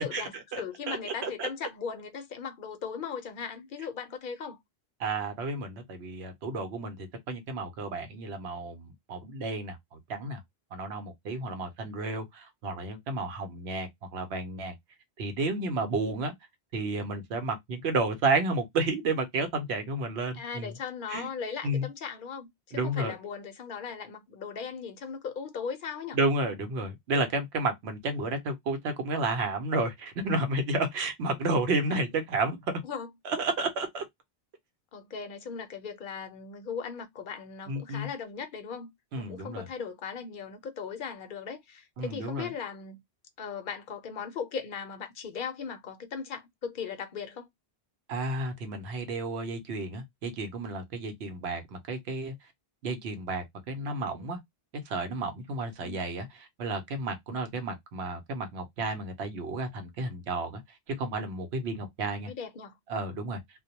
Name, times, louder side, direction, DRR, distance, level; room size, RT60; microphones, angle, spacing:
voice 1, 0.0-4.6 11.3-11.6 20.3-26.2 31.9-32.0 32.8-33.1 34.9-38.9 39.2-43.0 43.4-47.5 55.8-56.0 62.3-62.7, left 6 dB, 60° left, 0.7 m, -38 dB
voice 2, 0.9-1.5 5.0-10.4 10.7-14.7 15.2-16.3 16.7-20.7 21.1-21.3 21.6-21.9 22.7-23.1 26.1-32.6 33.2-34.0 37.7-38.1 39.1-39.7 42.0-42.5 48.1-52.3 52.8-54.4 54.9-56.3 56.6-60.6 61.0-62.3 62.9-63.4, right 2 dB, 90° right, 0.9 m, -31 dB
2.2 x 2.0 x 2.7 m
omnidirectional pair, 1.1 m